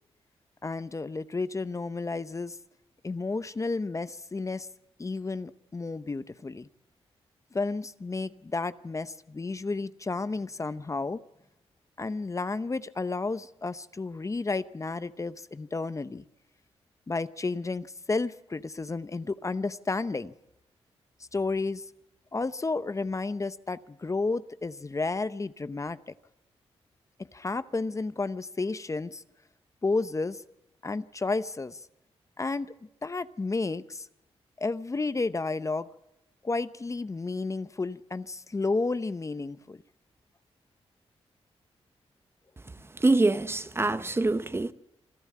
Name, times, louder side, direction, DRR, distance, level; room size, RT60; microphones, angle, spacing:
voice 1, 0.6-2.6 3.0-4.7 5.0-6.7 7.5-11.2 12.0-16.2 17.1-20.3 21.3-21.8 22.3-26.1 27.2-29.2 29.8-30.4 30.8-31.8 32.4-32.7 33.0-34.1 34.6-35.9 36.4-39.8, left 3 dB, 30° left, 0.8 m, -32 dB
voice 2, 43.0-44.7, right 2 dB, 20° right, 0.8 m, -24 dB
26.0 x 12.0 x 8.5 m
cardioid pair, 70°, 11 cm